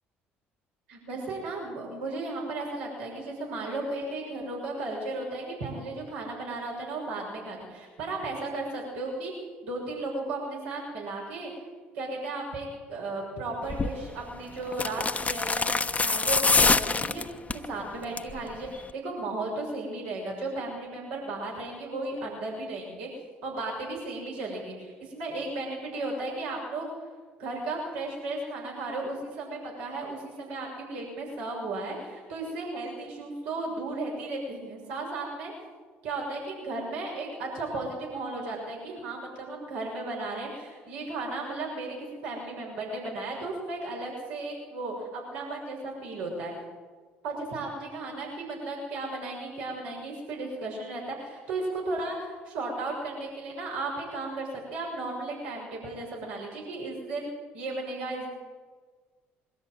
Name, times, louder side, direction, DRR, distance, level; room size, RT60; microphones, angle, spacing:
voice 1, 0.9-9.3 9.6-11.5 11.9-23.1 23.4-26.9 27.4-35.5 36.0-46.5 47.2-58.3, right 2 dB, 75° right, -3 dB, 6.7 m, -35 dB
sound 1, 13.7-14.0 14.7-17.7 18.0-18.4 18.7-18.8, left 4 dB, 25° left, 1.1 m, -25 dB
23.0 x 13.5 x 9.2 m, 1.4 s
hypercardioid pair, 55°, 6 cm